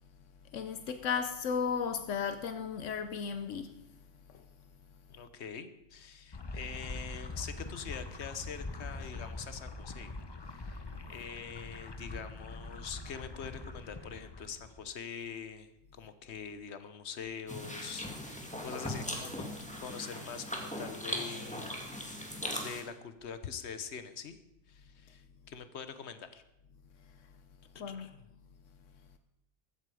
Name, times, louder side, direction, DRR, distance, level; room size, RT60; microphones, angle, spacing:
voice 1, 0.5-3.7 27.8-28.1, left 6 dB, 85° left, 1.1 m, -34 dB
voice 2, 5.1-10.1 10.4-19.5 19.7-24.4 24.7-26.4 27.9-28.3, left 6 dB, 65° left, 1.3 m, -44 dB
sound 1, 6.3-14.9, left 3 dB, 25° left, 0.7 m, -43 dB
sound 2, 17.5-22.8, equal, 5° left, 2.1 m, -39 dB
15.5 x 13.5 x 4.9 m
omnidirectional pair, 1.2 m